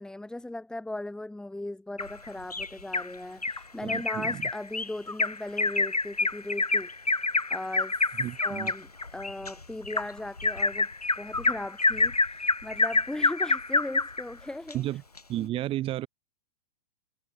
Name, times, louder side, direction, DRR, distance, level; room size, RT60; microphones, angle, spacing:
voice 1, 0.0-6.9 7.5-8.0 8.4-10.9 11.2-14.8 15.4-15.5, left 1 dB, 5° left, 7.5 m, -38 dB
Bird vocalization bird call bird song, 2.0-3.1 3.4-3.6 3.9-14.2 14.7-14.8 15.2-15.3, left 3 dB, 85° left, 2.8 m, -27 dB
voice 2, 3.8-4.5 8.2-8.7 14.7-15.0 15.3-16.1, right 14 dB, 30° right, 7.3 m, -32 dB
figure-of-eight pair, 105°, 19 cm